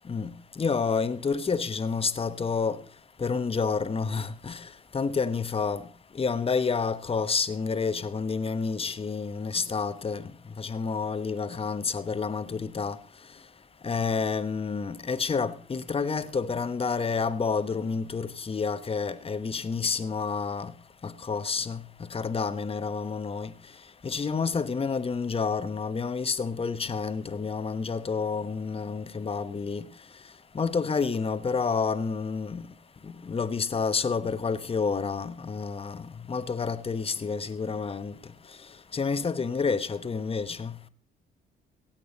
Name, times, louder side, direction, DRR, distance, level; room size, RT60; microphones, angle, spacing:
voice 1, 0.1-2.8 3.2-4.6 4.9-5.8 6.2-10.2 10.6-13.0 13.8-20.7 21.0-21.8 22.1-23.5 24.0-29.8 30.5-32.7 33.0-38.1 38.9-40.7, left 5 dB, 30° left, 1.0 m, -29 dB
16.5 x 8.5 x 5.3 m
cardioid pair, 90°, 20 cm